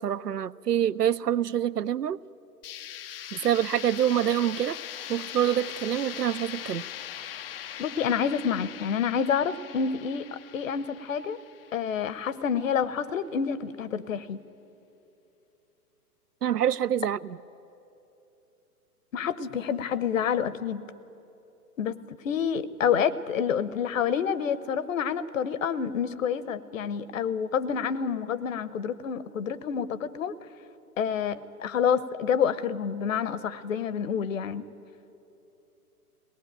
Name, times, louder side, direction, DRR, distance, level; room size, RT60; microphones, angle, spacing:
voice 1, 0.0-2.2 3.3-4.8 5.1-6.8 16.4-17.2, right 10 dB, 85° right, 0.6 m, -26 dB
sound 1, 2.6-12.4, left 11 dB, 40° left, 0.5 m, -41 dB
voice 2, 7.8-11.4 11.7-14.4 19.1-20.8 21.8-30.3 31.0-34.6, left 7 dB, 55° left, 1.0 m, -28 dB
23.0 x 18.5 x 9.1 m
figure-of-eight pair, 115°, 46 cm